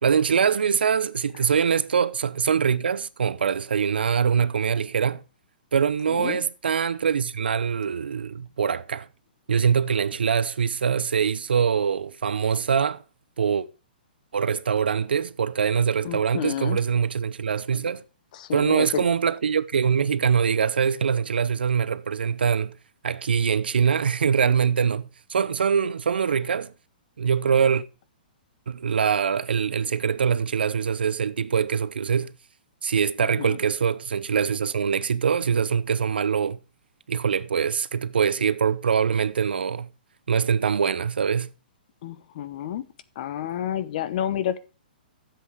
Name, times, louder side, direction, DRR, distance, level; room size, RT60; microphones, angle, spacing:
voice 1, 0.0-5.2 5.7-9.1 9.5-13.0 13.4-13.7 14.3-18.0 18.5-22.7 23.0-26.7 27.2-27.8 28.7-32.3 32.8-36.6 37.1-39.9 40.3-41.5, right 7 dB, 85° right, 0.7 m, -23 dB
voice 2, 6.1-6.4 16.0-16.8 18.3-19.0 33.4-33.6 42.0-42.8 43.2-44.6, left 10 dB, 50° left, 1.0 m, -30 dB
10.0 x 7.7 x 4.7 m
hypercardioid pair, 140°, 5 cm